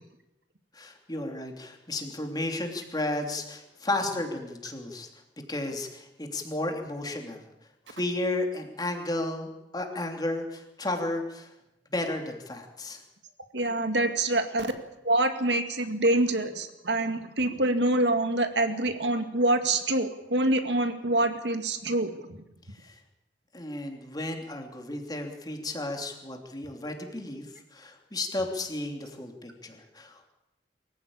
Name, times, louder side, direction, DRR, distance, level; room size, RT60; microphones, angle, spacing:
voice 1, 0.7-5.1 5.5-7.4 7.9-11.5 11.9-13.0 22.8-23.0 23.5-30.3, left 2 dB, 20° left, 3 dB, 3.1 m, -33 dB
voice 2, 13.5-14.7 15.0-22.4, right 2 dB, 70° right, 7 dB, 2.2 m, -26 dB
24.0 x 15.0 x 8.8 m, 0.93 s
head